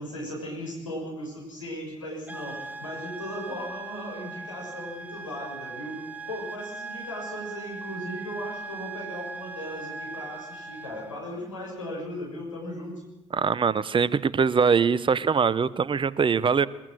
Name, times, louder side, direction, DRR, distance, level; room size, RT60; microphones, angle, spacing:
voice 1, 0.0-6.0 6.3-12.9, equal, 90° left, -4 dB, 6.8 m, -37 dB
sound 1, 2.3-11.2, right 4 dB, 10° right, 2.6 m, -39 dB
voice 2, 13.3-16.7, right 6 dB, 30° right, 19 dB, 1.0 m, -22 dB
22.0 x 21.5 x 6.4 m, 0.96 s
figure-of-eight pair, 50°, 16 cm